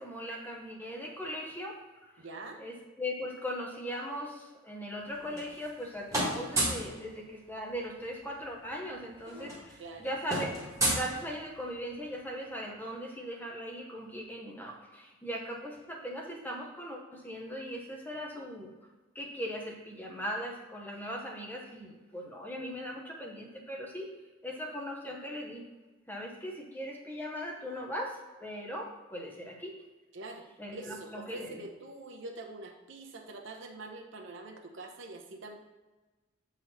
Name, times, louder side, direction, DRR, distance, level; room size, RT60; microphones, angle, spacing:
voice 1, 0.0-1.8 2.1-2.2 2.6-10.5 11.0-18.7 19.1-24.1 24.4-25.6 26.1-29.7 30.6-31.6, equal, 10° left, 0 dB, 0.8 m, -39 dB
voice 2, 2.2-2.6 9.3-9.4 9.8-10.1 30.1-30.5 30.7-35.6, right 2 dB, 65° right, 2 dB, 0.8 m, -45 dB
sound 1, 5.0-5.8 6.1-6.9 8.3-8.4 8.6-8.8 9.1-11.7, right 1 dB, 15° right, 1.5 m, -33 dB
7.3 x 4.1 x 4.1 m, 1.2 s
head